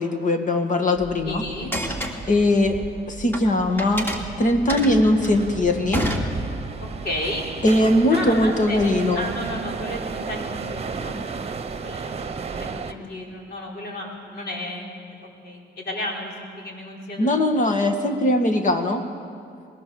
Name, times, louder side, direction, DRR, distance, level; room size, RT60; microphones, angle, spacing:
voice 1, 0.0-1.4 2.3-2.8 3.1-4.1 4.4-6.1 7.6-9.2 17.2-19.0, left 1 dB, 40° left, 6 dB, 2.1 m, -20 dB
sound 1, 1.0-12.9, right 5 dB, 30° right, 1.2 m, -34 dB
voice 2, 1.2-1.7 4.7-5.0 7.0-7.5 8.1-8.8 9.1-11.2 11.8-14.9 15.2-17.6, left 1 dB, 55° left, -1 dB, 4.7 m, -33 dB
sound 2, 1.6-3.4 3.8-6.8, equal, 10° left, 2.6 m, -29 dB
21.5 x 17.0 x 7.2 m, 2.3 s
cardioid pair, 90°, 20 cm